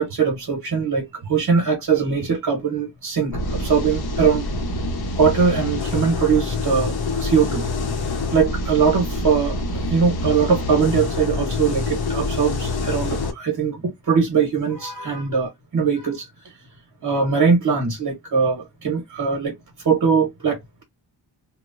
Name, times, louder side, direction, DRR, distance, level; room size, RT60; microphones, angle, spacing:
voice 1, 0.0-4.4 5.2-6.9 7.2-7.6 8.3-16.3 17.0-19.6 19.8-20.8, right 6 dB, 55° right, 0.9 m, -21 dB
sound 1, 3.3-13.3, left 2 dB, 60° left, 0.8 m, -26 dB
3.0 x 2.0 x 2.4 m
wide cardioid pair, 160°, 42 cm